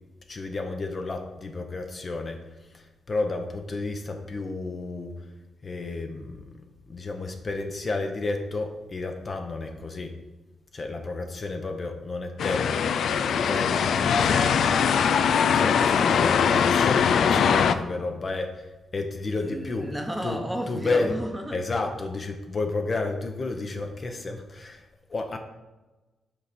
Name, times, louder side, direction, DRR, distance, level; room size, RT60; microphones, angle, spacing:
voice 1, 0.3-5.1 5.6-6.5 6.9-10.1 10.7-14.8 15.5-19.9 20.2-21.1 21.5-25.4, left 3 dB, 40° left, 4 dB, 0.8 m, -32 dB
sound 1, 12.4-17.7, left 7 dB, 70° left, 0.4 m, -21 dB
voice 2, 19.5-21.6, equal, 5° right, 4 dB, 1.0 m, -32 dB
6.0 x 4.0 x 6.1 m, 1.1 s
cardioid pair, 90°, 0 cm